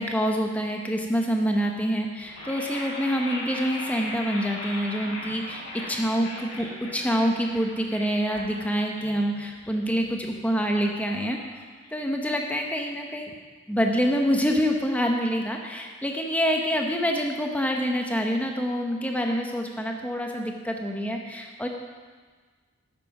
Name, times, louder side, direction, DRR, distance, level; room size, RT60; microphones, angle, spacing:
voice 1, 0.0-6.7 6.9-11.4 11.9-13.3 13.7-21.7, equal, 5° left, 1 dB, 1.0 m, -26 dB
sound 1, 2.2-12.2, left 1 dB, 75° left, 2.6 m, -39 dB
9.6 x 8.7 x 5.9 m, 1.5 s
head